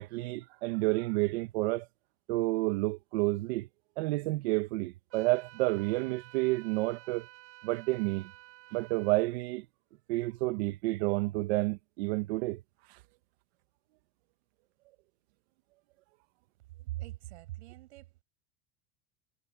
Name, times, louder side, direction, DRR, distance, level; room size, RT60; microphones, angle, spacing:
voice 1, 0.0-1.8 2.3-3.7 4.0-7.3 7.6-8.3 8.7-9.6 10.1-12.6 12.9-13.0, right 21 dB, 70° right, 1.4 m, -30 dB
sound 1, 5.1-9.3, right 17 dB, 45° right, 4.4 m, -53 dB
voice 2, 16.9-18.2, right 17 dB, 90° right, 7.0 m, -41 dB
supercardioid pair, 145°, 33 cm